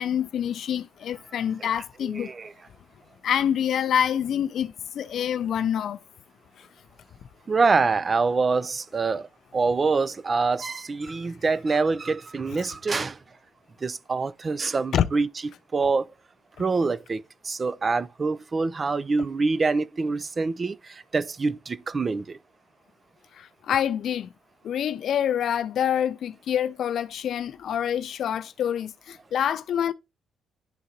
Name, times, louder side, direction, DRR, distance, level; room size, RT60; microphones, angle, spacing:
voice 1, 0.0-2.3 3.2-6.0 12.5-12.7 14.9-15.1 23.4-24.3 24.6-29.9, left 9 dB, 65° left, 0.3 m, -26 dB
voice 2, 1.7-2.5 7.5-13.2 13.8-15.3 15.7-16.1 16.6-22.4, right 4 dB, 35° right, 0.4 m, -25 dB
11.0 x 3.9 x 2.8 m
cardioid pair, 90°, 0 cm